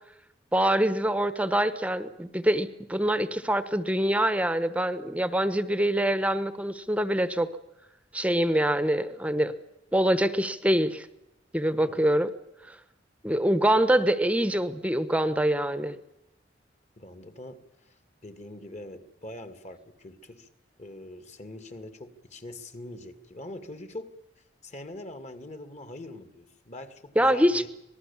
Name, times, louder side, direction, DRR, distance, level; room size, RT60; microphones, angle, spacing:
voice 1, 0.5-7.5 8.1-9.5 9.9-11.1 11.5-12.3 12.7-12.8 13.2-16.0 27.2-27.7, right 1 dB, 5° right, 12 dB, 1.1 m, -25 dB
voice 2, 17.0-20.5 20.8-24.1 24.6-27.7, left 1 dB, 40° left, 9 dB, 2.3 m, -43 dB
26.0 x 19.5 x 7.2 m, 0.86 s
head